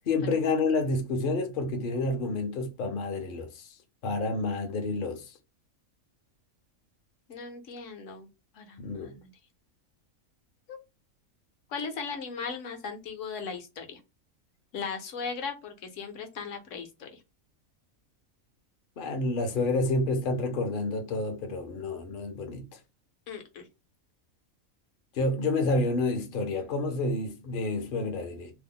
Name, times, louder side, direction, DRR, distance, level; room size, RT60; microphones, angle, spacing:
voice 1, 0.1-3.5 4.0-5.2 8.8-9.1 19.0-22.6 25.2-28.5, left 2 dB, 50° left, 0.7 m, -29 dB
voice 2, 7.3-8.3 8.5-9.3 10.7-10.8 11.7-14.0 14.7-17.2 23.3-23.7, left 5 dB, 65° left, 1.1 m, -38 dB
2.9 x 2.0 x 3.5 m
omnidirectional pair, 1.5 m